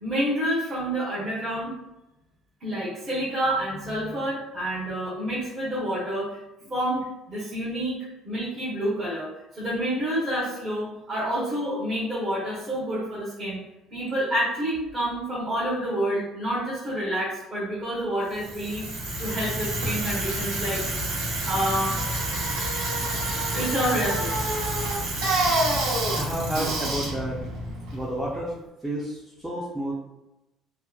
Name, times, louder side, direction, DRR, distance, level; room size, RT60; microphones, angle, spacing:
voice 1, 0.0-1.7 2.6-6.4 6.7-8.0 8.2-9.3 9.6-13.6 13.9-18.9 19.2-20.8 21.4-22.0 23.5-24.5, equal, 35° right, -10 dB, 0.9 m, -28 dB
Bicycle, 18.3-28.4, right 1 dB, 80° right, 0.9 m, -28 dB
voice 2, 26.1-27.4 27.9-28.5 28.8-30.0, right 1 dB, 10° right, -6 dB, 0.4 m, -30 dB
2.8 x 2.1 x 2.3 m, 0.94 s
cardioid pair, 135°, 0 cm